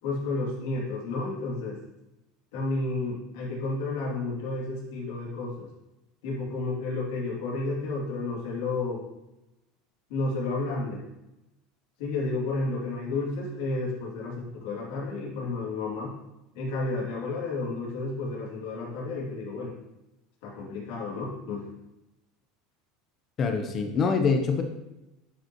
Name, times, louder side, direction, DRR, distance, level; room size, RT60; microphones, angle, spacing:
voice 1, 0.0-1.8 2.5-5.7 6.2-9.0 10.1-11.0 12.0-16.1 16.5-19.8 20.4-21.7, left 3 dB, 75° left, -4 dB, 2.9 m, -31 dB
voice 2, 23.4-24.6, left 5 dB, 30° left, 5 dB, 1.0 m, -24 dB
11.0 x 5.4 x 3.2 m, 0.94 s
supercardioid pair, 140°, 0 cm